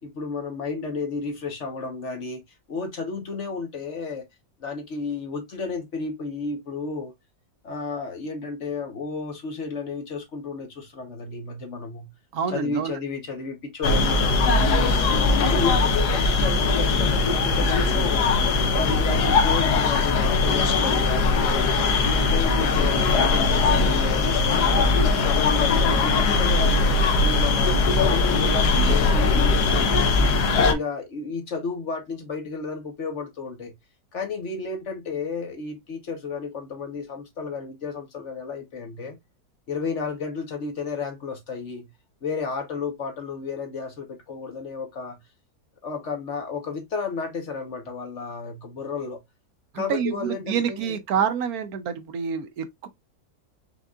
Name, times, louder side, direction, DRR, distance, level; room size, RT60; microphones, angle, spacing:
voice 1, 0.0-2.4 2.7-4.3 4.6-7.1 7.6-12.1 12.5-15.1 15.5-18.2 18.7-24.7 25.1-26.8 27.2-30.1 30.6-33.7 34.1-39.2 39.7-41.9 42.2-45.2 45.8-49.2 49.7-51.0, left 4 dB, 50° left, 1.2 m, -32 dB
voice 2, 12.3-12.9 49.7-52.9, right 7 dB, 70° right, 1.1 m, -27 dB
sound 1, 13.8-30.7, left 3 dB, 80° left, 1.4 m, -20 dB
5.3 x 3.5 x 2.3 m
omnidirectional pair, 1.7 m